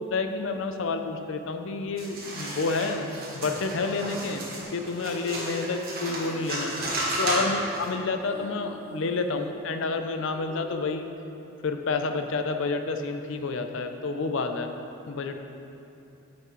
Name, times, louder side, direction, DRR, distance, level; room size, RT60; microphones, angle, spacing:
voice 1, 0.1-6.7 7.2-11.1 11.6-14.7 15.1-15.4, left 3 dB, 60° left, 6 dB, 0.4 m, -29 dB
sound 1, 2.0-7.9, right 1 dB, 45° right, 1.4 m, -33 dB
sound 2, 4.8-11.7, left 1 dB, 10° left, 0.6 m, -45 dB
8.9 x 5.8 x 3.1 m, 2.8 s
head